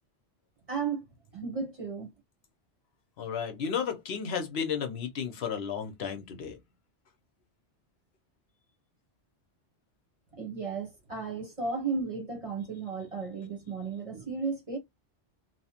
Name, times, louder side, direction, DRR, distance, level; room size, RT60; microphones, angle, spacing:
voice 1, 0.7-1.0 1.3-2.1 10.3-14.8, right 5 dB, 35° right, 0.7 m, -34 dB
voice 2, 3.2-6.6, left 7 dB, 70° left, 0.9 m, -33 dB
2.9 x 2.0 x 2.8 m
omnidirectional pair, 1.1 m